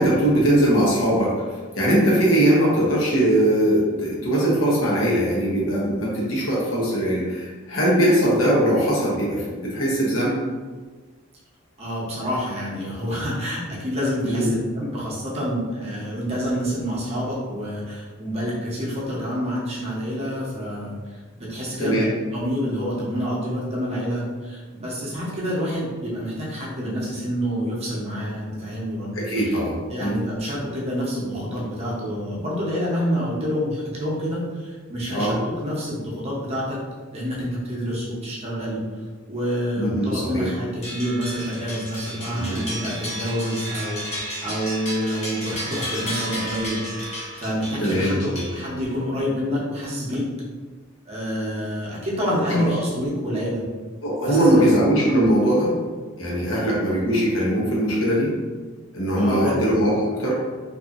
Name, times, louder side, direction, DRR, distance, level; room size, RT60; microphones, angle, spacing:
voice 1, 0.0-1.4 1.8-10.4 14.2-14.5 21.8-22.1 29.1-30.2 35.1-35.3 39.8-40.5 42.3-42.6 47.8-48.5 52.5-52.8 54.0-55.7 56.2-58.3 58.9-60.3, right 1 dB, 70° left, -5 dB, 0.9 m, -21 dB
voice 2, 11.8-21.0 21.4-22.0 22.3-29.1 29.9-36.8 37.1-38.8 39.3-46.8 47.1-50.3 51.1-53.6 54.2-54.8 59.1-59.5, equal, 30° right, -5 dB, 0.7 m, -27 dB
sound 1, 40.8-49.0, equal, 35° left, 0.8 m, -33 dB
2.6 x 2.6 x 2.4 m, 1.4 s
head